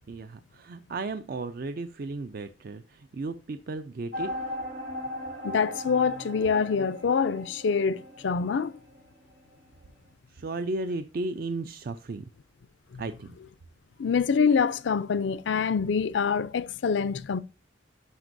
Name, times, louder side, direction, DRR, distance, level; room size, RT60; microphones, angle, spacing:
voice 1, 0.1-4.3 10.3-12.2 13.0-13.3, right 3 dB, 50° right, 0.4 m, -34 dB
sound 1, 4.1-9.7, left 1 dB, 75° right, 3.5 m, -38 dB
voice 2, 5.4-8.7 12.9-13.0 14.0-17.4, left 6 dB, 65° left, 0.4 m, -25 dB
12.0 x 5.1 x 2.6 m
head